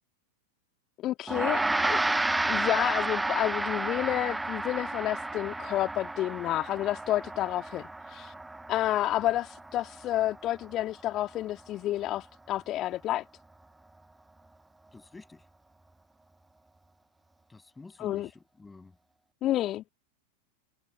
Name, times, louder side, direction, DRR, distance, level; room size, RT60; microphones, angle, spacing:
voice 1, 1.0-2.0 2.4-8.3 8.7-13.2 18.0-18.3 19.4-19.9, left 14 dB, 35° left, 2.0 m, -30 dB
Gong, 1.3-10.8, right 2 dB, 5° right, 0.6 m, -32 dB
voice 2, 14.9-15.5 17.5-19.0, left 3 dB, 10° left, 7.1 m, -49 dB
figure-of-eight pair, 90°, 0 cm